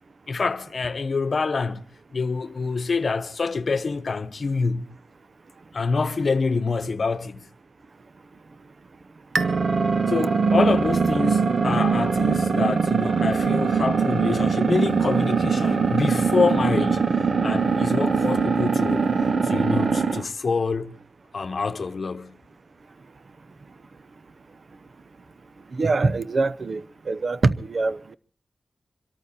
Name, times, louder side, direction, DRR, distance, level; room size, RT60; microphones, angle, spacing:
voice 1, 0.3-1.8 2.1-5.0 5.7-7.5 10.1-19.1 19.4-21.0 21.3-22.4, left 4 dB, 60° left, 1.0 m, -26 dB
sound 1, 9.3-20.2, right 5 dB, 70° right, 1.2 m, -22 dB
voice 2, 25.7-28.2, right 3 dB, 55° right, 0.8 m, -24 dB
24.5 x 13.5 x 4.2 m
wide cardioid pair, 85°, 0 cm